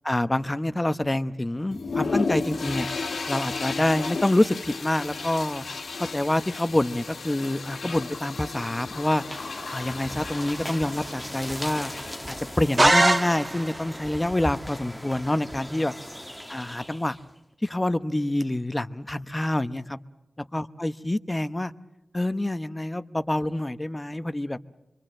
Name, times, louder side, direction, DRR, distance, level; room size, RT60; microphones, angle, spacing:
voice 1, 0.0-2.9 3.3-5.6 6.0-9.2 9.7-11.9 12.3-15.9 16.5-17.2 17.6-20.0 20.5-21.7 22.1-24.6, left 1 dB, 20° left, 13 dB, 0.9 m, -26 dB
sound 1, 1.7-12.7, left 4 dB, 85° left, 1.9 m, -34 dB
sound 2, 8.9-17.3, equal, 5° left, 1.4 m, -39 dB
sound 3, 12.8-13.9, right 2 dB, 30° right, 1.4 m, -20 dB
25.5 x 24.0 x 7.7 m, 0.94 s
wide cardioid pair, 65°, 0 cm